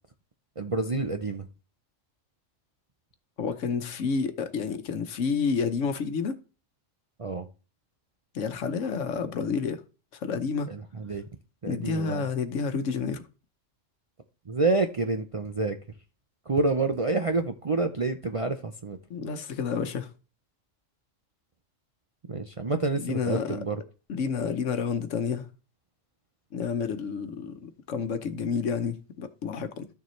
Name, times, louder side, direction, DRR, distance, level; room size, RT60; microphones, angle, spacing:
voice 1, 0.6-1.5 7.2-7.5 10.7-11.2 11.6-12.2 14.5-15.8 16.5-19.0 22.3-23.8, right 3 dB, 40° right, 0.5 m, -28 dB
voice 2, 3.4-6.4 8.3-9.8 10.2-10.7 11.7-13.2 19.1-20.1 23.0-23.6 24.1-25.5 26.5-29.9, left 5 dB, 70° left, 1.2 m, -30 dB
12.5 x 6.7 x 3.2 m
omnidirectional pair, 1.3 m